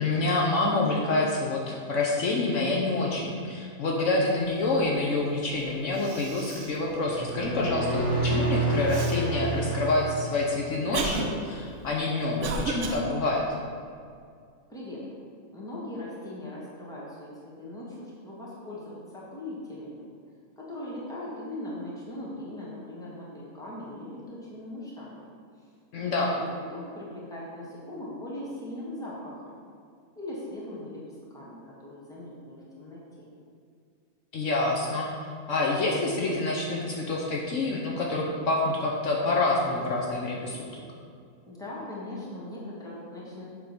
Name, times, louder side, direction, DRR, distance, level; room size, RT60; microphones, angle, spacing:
voice 1, 0.0-13.4 25.9-26.3 34.3-35.1 35.5-40.8, left 2 dB, 65° left, -2 dB, 1.1 m, -27 dB
Cough, 5.5-5.6 5.9-6.8 7.3-7.4 8.9-9.2 10.0-13.0, right 4 dB, 65° right, 1.0 m, -34 dB
sound 1, 7.0-10.8, right 2 dB, 85° left, 2.2 m, -29 dB
voice 2, 14.7-15.0 15.5-20.1 20.6-25.2 25.9-26.4 26.7-29.6 30.2-33.3 41.5-43.4, left 1 dB, 5° left, -7 dB, 1.6 m, -40 dB
7.6 x 3.7 x 5.9 m, 2.3 s
omnidirectional pair, 1.4 m